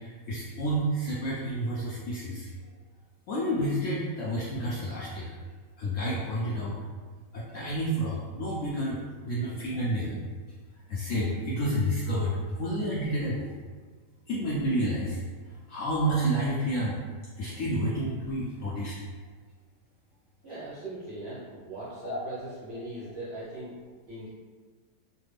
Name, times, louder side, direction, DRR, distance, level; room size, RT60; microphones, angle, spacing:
voice 1, 0.0-2.5 3.3-5.3 5.8-6.7 7.3-9.0 9.2-10.2 10.9-13.5 14.3-15.2 15.7-17.0 17.4-18.9 22.0-22.2, right 1 dB, 70° left, -6 dB, 0.7 m, -29 dB
voice 2, 20.4-23.8 24.1-24.3, right 1 dB, 55° right, -8 dB, 0.7 m, -40 dB
3.3 x 2.2 x 3.2 m, 1.5 s
omnidirectional pair, 1.8 m